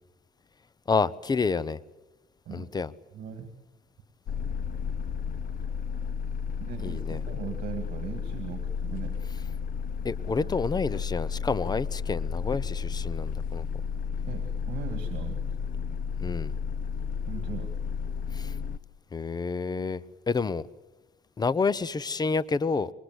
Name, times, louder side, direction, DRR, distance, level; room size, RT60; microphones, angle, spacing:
voice 1, 0.9-1.8 2.5-2.9 6.8-7.2 10.0-13.7 16.2-16.5 18.3-18.5 19.1-20.6 21.4-22.9, left 4 dB, 25° left, 0.8 m, -29 dB
voice 2, 3.1-3.5 6.6-9.2 10.4-10.5 14.3-15.5 17.3-17.7, right 8 dB, 60° right, 2.7 m, -39 dB
sound 1, 4.3-18.8, left 6 dB, 55° left, 0.9 m, -32 dB
27.0 x 23.5 x 8.1 m
cardioid pair, 110°, 17 cm